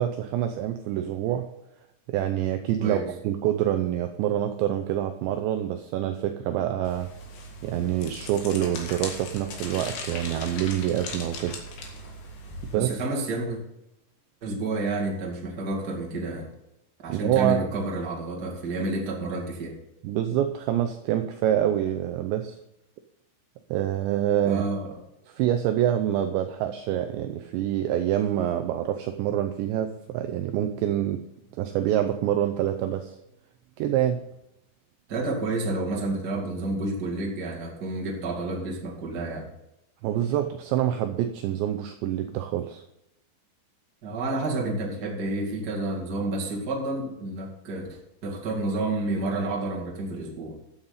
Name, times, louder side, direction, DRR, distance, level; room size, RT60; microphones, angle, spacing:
voice 1, 0.0-1.5 2.1-7.1 7.6-11.6 12.7-12.9 17.1-17.7 20.0-22.6 23.7-24.6 25.3-31.2 31.6-33.2 33.8-34.2 40.0-42.8, right 11 dB, 80° right, 6 dB, 2.6 m, -26 dB
sound 1, 6.8-12.8, left 2 dB, 60° left, 3.8 m, -38 dB
voice 2, 12.7-13.6 14.4-16.5 17.0-19.8 24.4-25.0 35.1-39.5 44.0-50.6, right 2 dB, 35° right, -1 dB, 1.7 m, -30 dB
13.0 x 8.8 x 4.1 m, 0.84 s
omnidirectional pair, 5.7 m